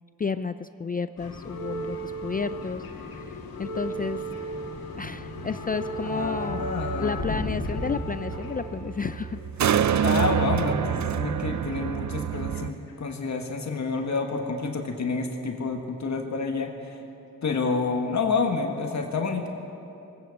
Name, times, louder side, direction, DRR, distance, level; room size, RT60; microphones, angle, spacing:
voice 1, 0.2-3.2 3.6-4.2 5.0-6.6 6.9-10.0, left 5 dB, 25° left, 12 dB, 0.3 m, -32 dB
sound 1, 1.2-10.6 11.5-12.6 12.9-13.1 14.0-14.1, equal, 85° left, 2.3 m, -36 dB
sound 2, 5.0-12.7, right 9 dB, 55° right, 0.6 m, -28 dB
voice 2, 6.0-7.7 10.0-17.0 17.4-19.5, left 4 dB, 50° left, 3 dB, 1.4 m, -29 dB
23.0 x 9.4 x 6.5 m, 2.9 s
cardioid pair, 75°, 35 cm